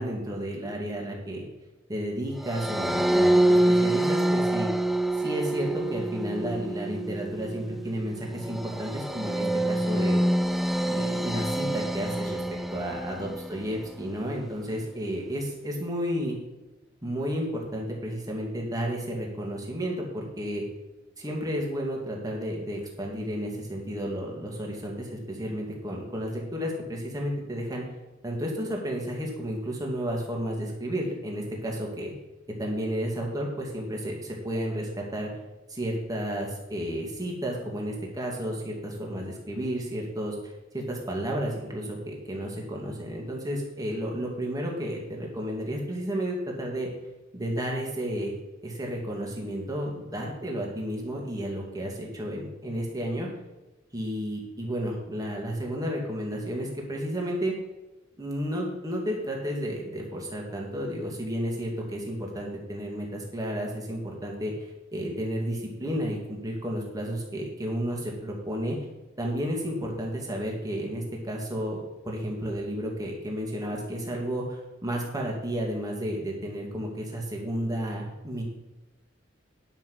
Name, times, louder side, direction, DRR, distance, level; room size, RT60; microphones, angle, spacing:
voice 1, 0.0-1.4 1.9-4.7 5.1-10.2 10.8-16.3 17.0-20.6 21.2-27.8 28.2-32.1 32.6-35.3 35.7-46.9 47.3-48.3 48.6-53.3 53.9-57.5 58.2-64.5 64.9-68.8 69.2-78.4, equal, 20° right, -1 dB, 2.4 m, -32 dB
sound 1, 2.4-13.8, right 1 dB, ahead, 0.4 m, -26 dB
10.5 x 6.0 x 6.3 m, 1.0 s
head